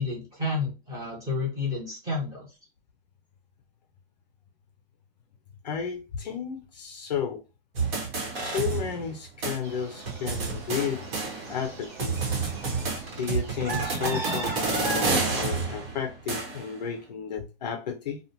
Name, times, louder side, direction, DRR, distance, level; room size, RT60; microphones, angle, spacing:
voice 1, 0.0-2.5, left 3 dB, 10° right, 0.9 m, -30 dB
voice 2, 5.6-7.4 8.4-11.0 11.5-12.1 13.2-18.2, left 7 dB, 45° left, 0.4 m, -33 dB
sound 1, 7.8-9.2 9.4-9.6 10.1-11.7 12.0-16.8, right 4 dB, 70° right, 1.0 m, -30 dB
sound 2, 9.6-15.4, right 2 dB, 25° right, 0.5 m, -37 dB
2.4 x 2.2 x 2.8 m
hypercardioid pair, 145°, 30 cm